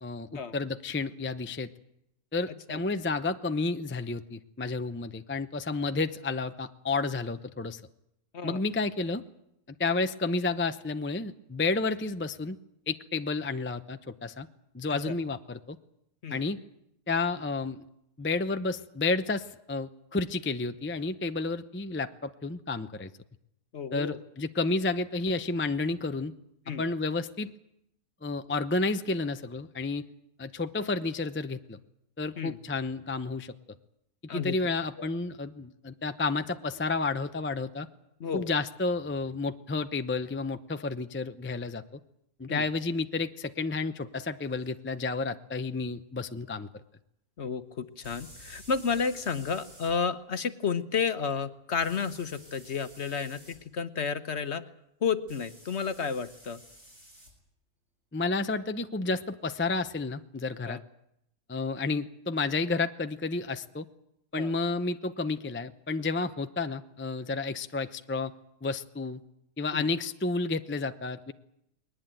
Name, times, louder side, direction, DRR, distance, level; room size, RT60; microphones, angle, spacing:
voice 1, 0.0-1.7 2.3-7.8 8.4-9.2 9.8-12.6 12.9-14.5 14.7-15.8 16.3-16.6 17.1-17.8 18.2-23.1 23.9-26.3 26.8-27.5 28.2-30.0 30.4-31.8 32.2-33.5 34.3-37.9 38.3-42.0 42.4-46.8 58.1-60.8 61.5-63.9 64.3-68.3 68.6-69.2 69.6-71.3, left 3 dB, 20° left, 9 dB, 0.3 m, -31 dB
voice 2, 23.7-24.2 26.7-26.8 32.4-32.6 34.3-34.6 35.0-35.1 38.2-38.5 42.5-42.7 47.4-54.6 55.0-56.6 60.6-60.8 64.3-64.5 69.7-69.9, left 6 dB, 45° left, 10 dB, 1.2 m, -31 dB
sound 1, 44.6-44.7 48.0-49.9 51.8-53.6 55.3-57.3, equal, 45° right, 7.5 m, -52 dB
21.0 x 19.5 x 9.1 m, 0.79 s
omnidirectional pair, 1.7 m